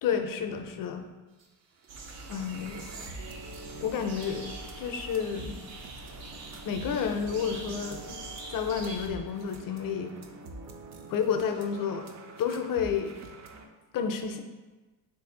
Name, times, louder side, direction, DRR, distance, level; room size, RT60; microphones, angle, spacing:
voice 1, 0.0-1.1 2.3-2.8 3.8-4.5 4.8-5.5 6.6-8.2 8.5-10.1 11.1-12.0 12.4-13.1 13.9-14.4, left 7 dB, 50° left, 6 dB, 0.4 m, -30 dB
sound 1, 1.4-1.5 1.8-13.7, right 2 dB, 40° right, 0.4 m, -46 dB
sound 2, 1.9-9.1, right 2 dB, 80° right, 0.7 m, -44 dB
3.0 x 2.6 x 3.7 m, 1.2 s
cardioid pair, 95°, 43 cm